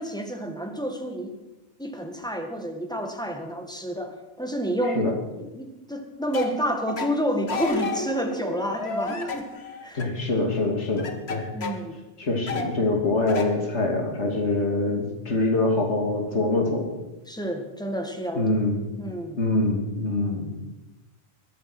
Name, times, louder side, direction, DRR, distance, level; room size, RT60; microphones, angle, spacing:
voice 1, 0.0-1.4 1.8-5.1 5.4-9.5 9.8-10.1 11.5-12.0 17.3-18.5 19.0-19.4, equal, 5° left, 3 dB, 2.0 m, -29 dB
sound 1, 6.3-6.6 6.9-7.2 7.5-10.1 11.0-11.8 12.5-12.8 13.3-13.6 13.8-14.8 15.7-15.8 16.0-16.9, left 4 dB, 65° left, 1.7 m, -32 dB
voice 2, 9.9-11.5 12.2-16.9 18.4-18.9 19.4-20.5, left 2 dB, 85° left, 2 dB, 3.0 m, -24 dB
21.5 x 10.0 x 6.2 m, 1.0 s
omnidirectional pair, 1.1 m